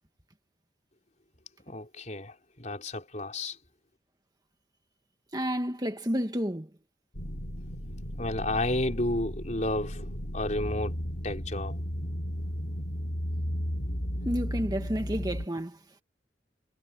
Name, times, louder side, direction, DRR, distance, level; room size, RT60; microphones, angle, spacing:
voice 1, 1.7-3.6 8.2-10.9 11.2-11.8, left 1 dB, 40° left, 4.5 m, -32 dB
voice 2, 5.3-6.7 14.3-15.8, equal, 20° right, 1.8 m, -30 dB
sound 1, 7.1-15.5, equal, 55° left, 3.5 m, -34 dB
head